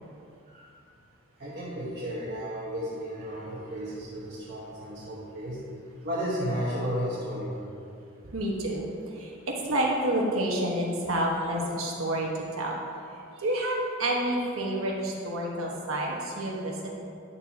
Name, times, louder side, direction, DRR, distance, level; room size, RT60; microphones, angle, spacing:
voice 1, 1.4-5.6 6.0-7.7 13.3-13.4, equal, 50° right, -8 dB, 1.2 m, -33 dB
voice 2, 8.2-12.8 13.4-17.0, right 1 dB, 75° right, -2 dB, 1.4 m, -29 dB
10.5 x 6.9 x 2.9 m, 2.5 s
head